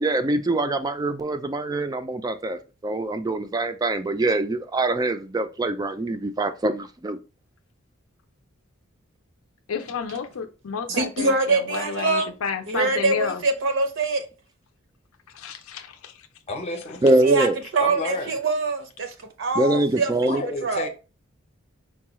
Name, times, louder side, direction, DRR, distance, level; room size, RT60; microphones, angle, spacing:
voice 1, 0.0-7.2 17.0-17.6 19.6-20.4, right 2 dB, 20° right, 0.3 m, -24 dB
voice 2, 9.7-13.4 15.3-16.3 16.9-17.0, left 6 dB, 75° left, 0.5 m, -31 dB
voice 3, 10.9-12.3 12.7-14.3 17.2-17.5 17.7-20.1 20.6-20.9, right 3 dB, 65° right, 0.6 m, -24 dB
voice 4, 16.5-17.0 17.8-18.4 20.3-20.9, left 2 dB, 30° left, 0.7 m, -30 dB
4.6 x 2.3 x 2.9 m
head